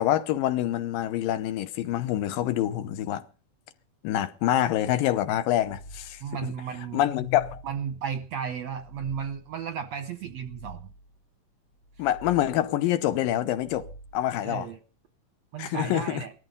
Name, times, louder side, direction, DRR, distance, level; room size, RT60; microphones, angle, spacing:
voice 1, 0.0-3.2 4.0-6.2 6.9-7.6 12.0-13.9 14.1-14.7 15.6-16.2, left 12 dB, 80° left, 2.6 m, -26 dB
sound 1, 5.4-6.5 7.0-8.1 8.6-9.6 10.2-11.3 11.7-12.8 13.4-14.5, right 1 dB, 60° left, 2.1 m, -49 dB
voice 2, 6.2-7.0 7.6-10.9 12.0-12.1 14.4-14.8 15.5-16.3, right 7 dB, 75° right, 1.6 m, -34 dB
17.5 x 13.5 x 5.4 m
omnidirectional pair, 4.1 m